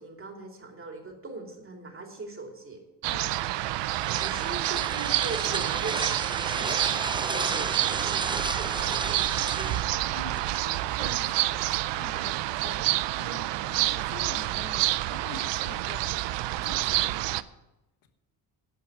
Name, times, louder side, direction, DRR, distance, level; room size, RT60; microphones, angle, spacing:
voice 1, 0.0-2.8 4.2-6.8 7.2-9.8, right 3 dB, 30° right, 3 dB, 2.7 m, -40 dB
sound 1, 3.0-17.4, right 16 dB, 85° right, 0.6 m, -28 dB
voice 2, 3.1-3.5 10.1-17.4, left 7 dB, 85° left, 7 dB, 1.4 m, -46 dB
sound 2, 3.5-11.0, right 3 dB, 10° right, 0.5 m, -34 dB
11.5 x 5.9 x 9.2 m, 0.94 s
cardioid pair, 105°, 41 cm